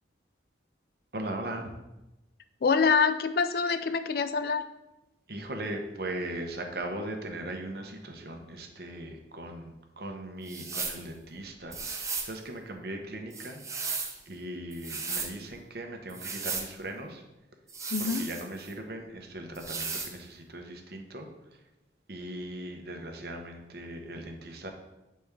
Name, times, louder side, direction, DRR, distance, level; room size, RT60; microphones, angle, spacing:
voice 1, 1.1-1.7 5.3-13.6 14.3-17.2 18.0-21.3 22.1-24.7, right 1 dB, 55° right, 3 dB, 0.9 m, -39 dB
voice 2, 2.6-4.6 17.9-18.3, left 5 dB, 55° left, 11 dB, 0.4 m, -25 dB
sound 1, 10.5-11.0 11.7-12.3 13.3-14.2 14.7-15.3 16.1-16.7 17.7-18.7 19.5-20.1, right 4 dB, 15° right, 0.6 m, -35 dB
8.0 x 4.2 x 3.5 m, 0.99 s
head